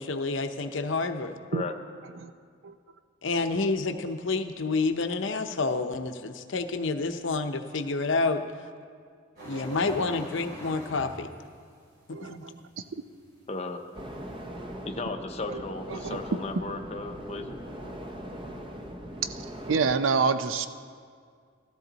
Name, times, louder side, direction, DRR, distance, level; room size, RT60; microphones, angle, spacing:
voice 1, 0.0-1.4 3.2-8.4 9.4-11.3 12.2-12.4, left 3 dB, 70° left, 7 dB, 0.7 m, -29 dB
sound 1, 9.4-14.5, equal, 50° right, 3.5 m, -44 dB
voice 2, 9.4-9.8 12.1-12.6 12.9-13.0 15.5-15.6 15.9-16.4 19.7-20.7, right 5 dB, 75° right, 11 dB, 0.5 m, -28 dB
voice 3, 13.5-13.8 14.9-17.6, left 3 dB, 30° left, 4 dB, 0.6 m, -35 dB
sound 2, 13.9-20.0, equal, 25° right, 0.7 m, -40 dB
14.0 x 13.0 x 4.0 m, 2.1 s
head